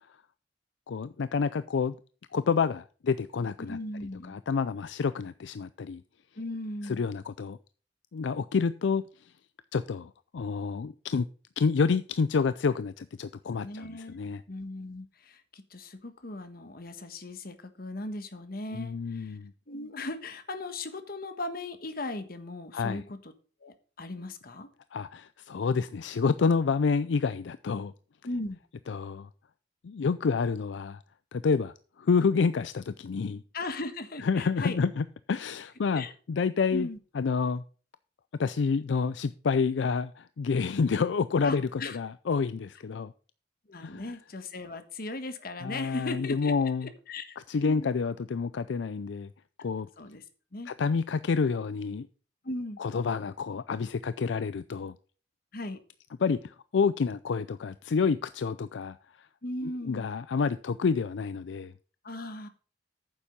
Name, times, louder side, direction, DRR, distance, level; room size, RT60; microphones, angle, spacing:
voice 1, 0.9-2.0 2.3-3.8 4.3-6.0 6.8-7.6 8.1-9.0 9.7-11.3 11.6-14.4 18.7-19.5 22.7-23.0 24.9-27.9 28.9-29.3 29.8-31.0 31.3-33.4 34.2-36.9 37.2-37.6 38.4-43.1 43.8-44.0 45.6-46.9 47.5-49.3 49.6-49.9 50.7-52.1 52.8-55.0 56.2-59.0 59.6-61.7, left 5 dB, 80° left, 0.4 m, -28 dB
voice 2, 3.7-4.3 6.4-7.0 13.6-14.2 14.5-19.4 19.7-23.3 23.6-24.7 28.2-28.6 33.5-34.8 35.9-36.1 36.7-37.0 41.4-42.0 43.7-46.5 46.8-47.9 50.0-50.2 50.5-50.7 52.4-52.8 55.5-55.8 59.4-60.1 62.0-62.5, left 2 dB, 55° left, 1.3 m, -38 dB
9.2 x 7.2 x 5.2 m
head